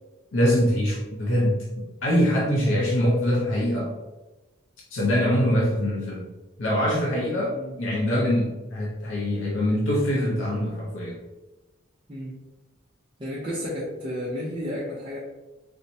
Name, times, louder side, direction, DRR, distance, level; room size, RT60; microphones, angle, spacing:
voice 1, 0.3-3.9 4.9-6.3 6.6-11.2, equal, 70° left, -3 dB, 0.6 m, -24 dB
voice 2, 13.2-15.2, equal, 25° right, -8 dB, 0.6 m, -32 dB
4.3 x 2.1 x 2.7 m, 1.1 s
head